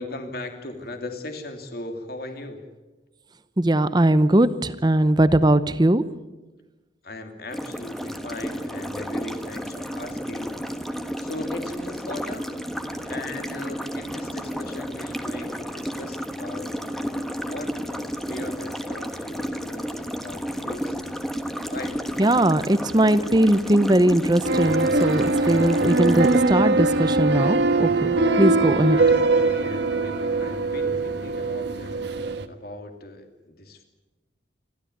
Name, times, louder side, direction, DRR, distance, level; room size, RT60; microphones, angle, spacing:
voice 1, 0.0-2.6 7.0-10.6 11.2-12.5 13.1-16.7 17.4-21.2 21.7-22.0 28.8-32.0 32.5-33.8, left 2 dB, 55° left, 5 dB, 2.8 m, -38 dB
voice 2, 3.6-6.1 22.2-29.0, right 1 dB, 25° right, 14 dB, 0.8 m, -20 dB
sound 1, 7.5-26.4, equal, ahead, 1.3 m, -32 dB
sound 2, 24.4-32.5, right 3 dB, 65° right, 1.5 m, -22 dB
28.5 x 13.0 x 9.6 m, 1.2 s
head